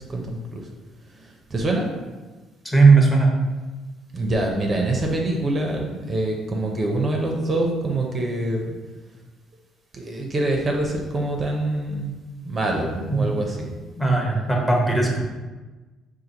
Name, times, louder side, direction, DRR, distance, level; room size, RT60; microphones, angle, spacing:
voice 1, 0.1-0.7 1.1-1.2 1.5-1.9 4.1-8.7 9.9-12.2 12.4-13.7, right 2 dB, 30° right, 1 dB, 0.5 m, -25 dB
voice 2, 2.6-3.3 13.1-13.3 14.0-15.3, right 3 dB, 10° left, -1 dB, 0.8 m, -17 dB
4.3 x 2.5 x 3.8 m, 1.3 s
cardioid pair, 110°, 0 cm